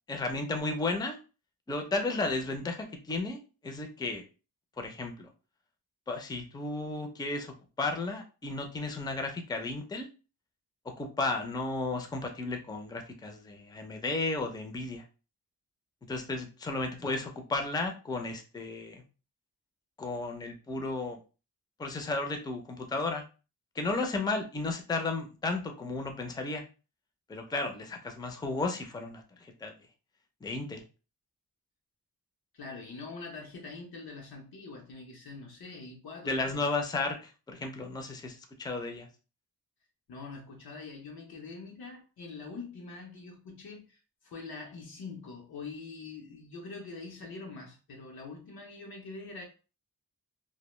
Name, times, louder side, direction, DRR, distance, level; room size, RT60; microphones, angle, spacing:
voice 1, 0.1-1.2 1.7-4.2 4.8-5.3 6.1-10.1 10.9-15.0 16.1-19.0 20.0-21.2 21.8-23.2 23.8-26.6 27.3-29.7 30.4-30.8 36.3-39.1, left 3 dB, 10° left, 0.4 m, -34 dB
voice 2, 32.5-36.7 40.1-44.0 44.2-49.4, left 3 dB, 85° left, 0.7 m, -44 dB
2.1 x 2.1 x 3.0 m
wide cardioid pair, 110°, 36 cm